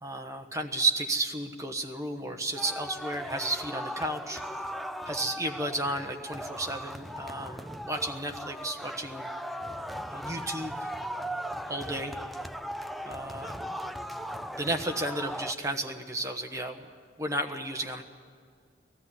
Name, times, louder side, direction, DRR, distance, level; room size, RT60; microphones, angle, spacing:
voice 1, 0.0-4.4 5.1-9.3 10.1-10.9 11.7-12.1 13.0-13.7 14.6-16.8 17.2-18.0, right 1 dB, 15° right, 4 dB, 1.2 m, -33 dB
sound 1, 2.6-15.5, equal, ahead, 0.4 m, -38 dB
18.5 x 14.0 x 9.9 m, 2.1 s
head